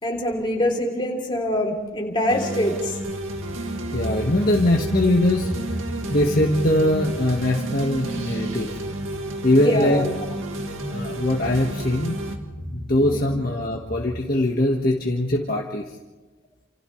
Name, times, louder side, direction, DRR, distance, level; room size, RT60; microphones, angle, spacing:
voice 1, 0.0-2.9 9.6-10.2 12.9-13.3, left 1 dB, 25° left, 0 dB, 3.3 m, -24 dB
sound 1, 2.3-12.4, right 1 dB, 90° right, 2.2 m, -31 dB
sound 2, 3.3-14.1, equal, 10° left, 2.1 m, -36 dB
voice 2, 3.9-5.5 6.1-8.7 9.4-10.0 10.8-12.1 12.6-15.8, left 1 dB, 45° left, -1 dB, 1.6 m, -21 dB
29.5 x 28.0 x 3.3 m, 1.2 s
head